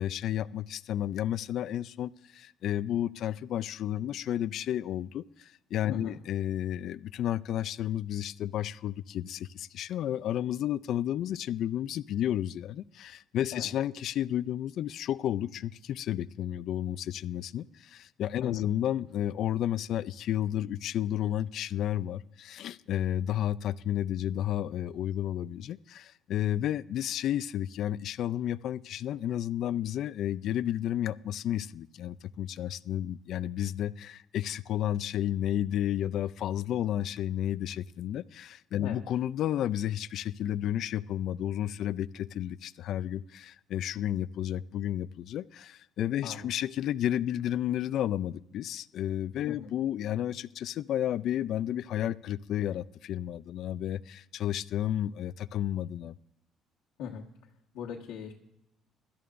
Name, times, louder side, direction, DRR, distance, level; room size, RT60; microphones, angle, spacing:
voice 1, 0.0-56.1, left 11 dB, 55° left, 16 dB, 0.4 m, -32 dB
voice 2, 5.9-6.2 13.5-13.7 18.4-18.7 38.8-39.0 46.2-46.5 49.5-49.7 57.0-57.3 57.7-58.3, left 7 dB, 80° left, -3 dB, 1.4 m, -40 dB
23.5 x 12.5 x 2.6 m, 0.82 s
cardioid pair, 165°, 0 cm